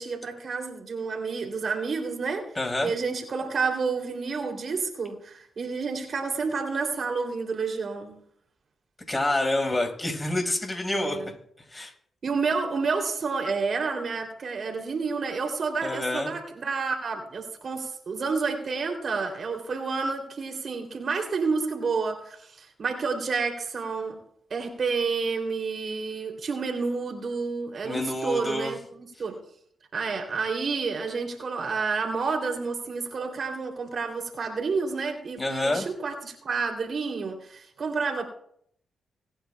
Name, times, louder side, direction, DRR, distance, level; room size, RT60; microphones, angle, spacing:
voice 1, 0.0-2.5 2.8-8.2 10.9-11.3 12.2-24.2 24.5-29.4 29.9-38.2, right 4 dB, 55° right, 3.1 m, -29 dB
voice 2, 2.6-2.9 9.1-11.2 11.7-11.9 15.8-16.3 27.8-28.7 35.4-35.9, left 2 dB, 25° left, 5.4 m, -27 dB
25.0 x 10.0 x 2.3 m
hypercardioid pair, 40°, 0 cm